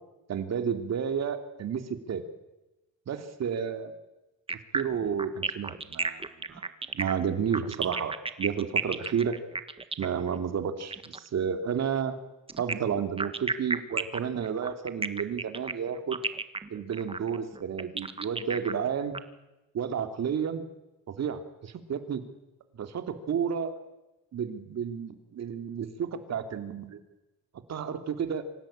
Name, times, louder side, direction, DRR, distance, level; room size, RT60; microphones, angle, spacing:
voice 1, 0.3-2.3 3.1-3.9 4.7-9.4 10.0-12.2 12.6-16.2 16.7-19.2 19.7-20.6 21.1-22.2 22.7-23.8 24.3-27.0 27.7-28.5, right 7 dB, 60° right, 8 dB, 2.8 m, -31 dB
sound 1, 4.5-11.3 12.5-19.2, right 3 dB, 20° right, 1.6 m, -33 dB
26.0 x 16.5 x 8.8 m, 1.0 s
cardioid pair, 90°, 30 cm